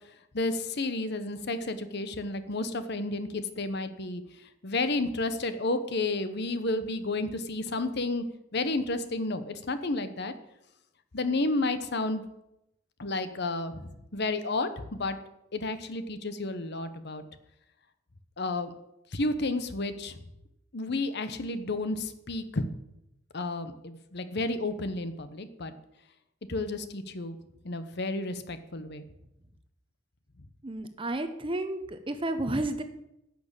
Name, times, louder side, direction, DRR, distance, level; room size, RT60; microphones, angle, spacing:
voice 1, 0.3-4.2 4.6-8.2 8.5-10.4 11.1-12.2 13.0-15.2 15.5-17.2 18.4-18.7 19.1-20.2 20.7-22.6 23.3-25.7 26.5-27.4 27.6-29.0, left 2 dB, 55° left, 11 dB, 0.9 m, -31 dB
voice 2, 30.6-32.8, right 1 dB, 25° right, 9 dB, 0.9 m, -31 dB
10.5 x 6.5 x 8.7 m, 0.85 s
head